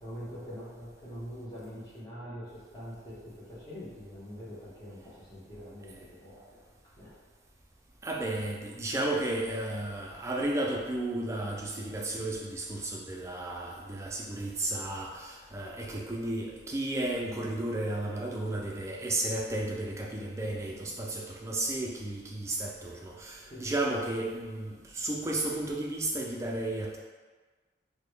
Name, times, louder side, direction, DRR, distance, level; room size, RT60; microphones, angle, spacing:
voice 1, 0.0-6.6 7.0-7.2 17.2-17.5 20.7-21.0 23.4-23.6, equal, 20° left, -10 dB, 1.1 m, -44 dB
voice 2, 8.0-27.0, right 1 dB, 15° right, -2 dB, 0.3 m, -33 dB
3.9 x 2.2 x 3.1 m, 1.4 s
head